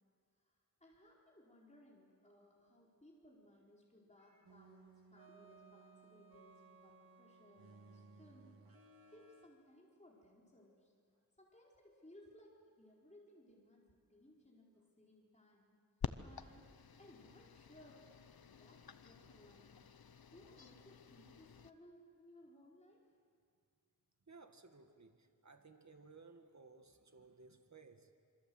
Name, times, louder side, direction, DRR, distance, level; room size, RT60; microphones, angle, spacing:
voice 1, 0.8-8.6 9.1-10.9 11.4-15.8 16.2-18.1 18.5-19.8 20.3-23.0, left 1 dB, 20° left, -3 dB, 4.5 m, -63 dB
voice 2, 4.2-4.5 14.0-14.2 24.3-28.1, right 4 dB, 50° right, 6 dB, 1.9 m, -60 dB
sound 1, 4.4-9.5, right 4 dB, 75° right, 2.5 m, -61 dB
sound 2, 16.0-21.7, left 7 dB, 90° left, 0.9 m, -49 dB
26.5 x 25.0 x 7.9 m, 2.1 s
wide cardioid pair, 55°, 35 cm